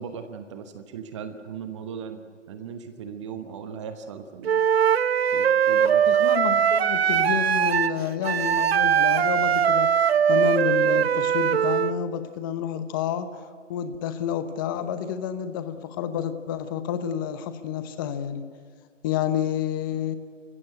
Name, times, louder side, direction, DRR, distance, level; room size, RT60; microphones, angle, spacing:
voice 1, 0.0-4.7 5.3-6.2, right 6 dB, 25° right, 8 dB, 1.0 m, -38 dB
Wind instrument woodwind instrument, 4.4-11.9, right 8 dB, 55° right, 0.6 m, -21 dB
voice 2, 6.1-9.9 10.3-18.4 19.0-20.2, left 9 dB, 15° left, 11 dB, 0.9 m, -29 dB
29.5 x 16.0 x 8.2 m, 2.1 s
hypercardioid pair, 150°, 37 cm